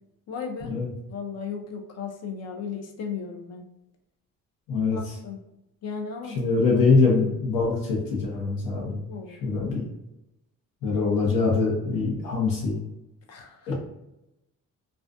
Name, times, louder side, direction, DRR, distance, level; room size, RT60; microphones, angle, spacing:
voice 1, 0.3-0.7 1.1-3.7 4.9-5.4 5.8-6.4 9.1-9.6 13.3-13.7, left 6 dB, 50° left, 3 dB, 0.6 m, -35 dB
voice 2, 6.4-9.0 9.4-9.8 10.8-12.8 13.7-13.8, left 4 dB, 85° left, -4 dB, 0.9 m, -23 dB
2.5 x 2.4 x 2.3 m, 0.91 s
cardioid pair, 95°, 34 cm